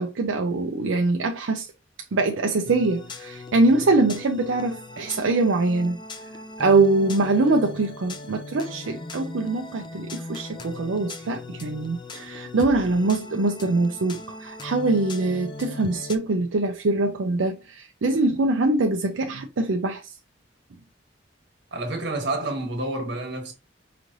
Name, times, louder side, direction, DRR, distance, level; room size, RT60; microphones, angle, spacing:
voice 1, 0.0-1.7 2.1-6.0 6.6-20.1, right 2 dB, 85° right, 0.5 m, -23 dB
sound 1, 2.7-16.2, left 2 dB, 25° left, 0.4 m, -39 dB
voice 2, 21.7-23.5, right 2 dB, 60° right, 1.4 m, -29 dB
4.9 x 3.1 x 2.6 m
head